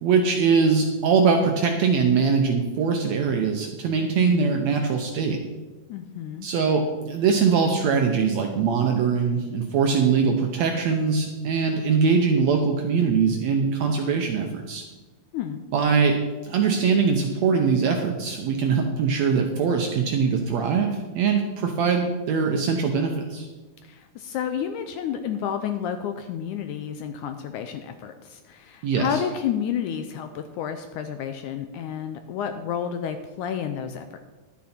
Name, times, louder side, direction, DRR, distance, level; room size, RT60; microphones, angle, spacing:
voice 1, 0.0-5.4 6.4-14.8 15.7-23.5 28.8-29.2, right 5 dB, 75° right, 3 dB, 1.6 m, -22 dB
voice 2, 5.9-6.5 15.3-15.6 23.8-34.2, left 8 dB, 80° left, 8 dB, 1.8 m, -30 dB
11.5 x 9.6 x 4.3 m, 1.2 s
omnidirectional pair, 3.9 m